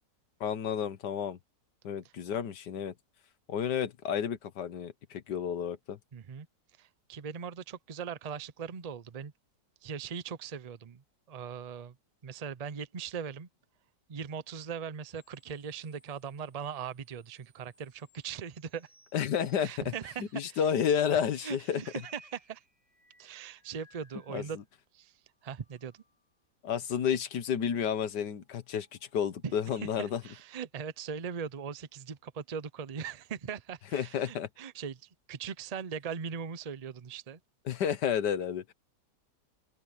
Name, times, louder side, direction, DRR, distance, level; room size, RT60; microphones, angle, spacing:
voice 1, 0.4-1.4 1.8-2.9 3.5-6.0 19.1-19.9 20.3-21.8 24.3-24.4 26.6-28.9 29.1-30.2 33.9-34.5 37.7-38.7, left 8 dB, 70° left, 1.7 m, -31 dB
voice 2, 6.1-6.5 6.8-9.3 9.8-11.0 11.3-11.9 12.2-13.5 14.1-18.9 19.6-20.7 21.4-22.6 23.2-24.6 24.9-25.1 25.4-26.0 29.4-29.5 29.8-37.4, right 7 dB, 85° right, 0.3 m, -40 dB
sound 1, 15.1-24.7 25.2-26.5 28.3-29.5, left 1 dB, 5° right, 6.6 m, -64 dB
omnidirectional pair, 1.9 m